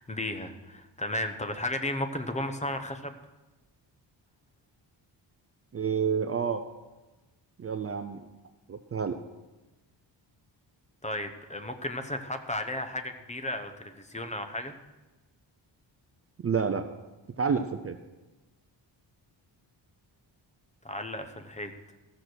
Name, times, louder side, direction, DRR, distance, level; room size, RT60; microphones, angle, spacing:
voice 1, 0.0-3.2 11.0-14.7 20.8-21.7, left 1 dB, 15° left, 7 dB, 0.8 m, -34 dB
voice 2, 5.7-6.6 7.6-8.2 8.7-9.2 16.4-16.9 17.4-18.0, right 6 dB, 30° right, 8 dB, 0.5 m, -29 dB
15.5 x 6.7 x 6.1 m, 1.1 s
wide cardioid pair, 145°, 45 cm